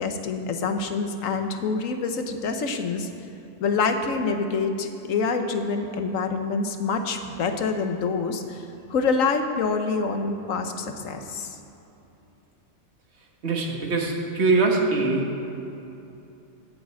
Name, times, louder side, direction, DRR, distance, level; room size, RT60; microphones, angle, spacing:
voice 1, 0.0-3.1 3.6-11.6, left 4 dB, 80° left, 6 dB, 1.3 m, -26 dB
voice 2, 13.4-15.3, right 3 dB, 55° right, 0 dB, 1.6 m, -22 dB
8.8 x 8.5 x 8.3 m, 2.9 s
omnidirectional pair, 1.4 m